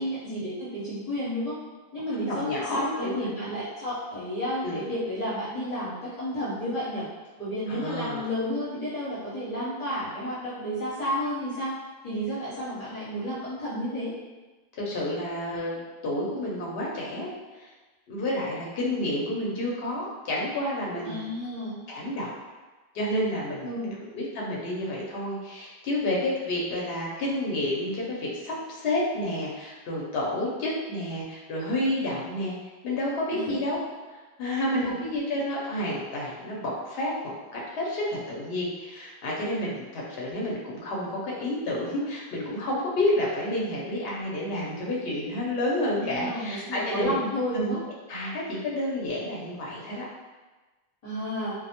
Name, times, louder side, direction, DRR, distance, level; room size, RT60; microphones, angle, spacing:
voice 1, 0.0-1.6 1.9-7.0 7.4-11.7 12.0-14.1 21.0-21.7 23.6-23.9 33.3-33.4 34.6-35.0 46.0-47.8 51.0-51.5, equal, 40° left, -11 dB, 1.0 m, -31 dB
voice 2, 2.2-3.3 4.6-4.8 7.7-8.2 14.7-15.8 16.0-17.7 18.1-21.3 21.9-22.3 22.9-32.5 32.8-33.8 34.1-47.1 47.5-47.7 48.1-50.0, left 1 dB, 75° left, -4 dB, 0.8 m, -30 dB
2.2 x 2.0 x 2.8 m, 1.2 s
omnidirectional pair, 1.0 m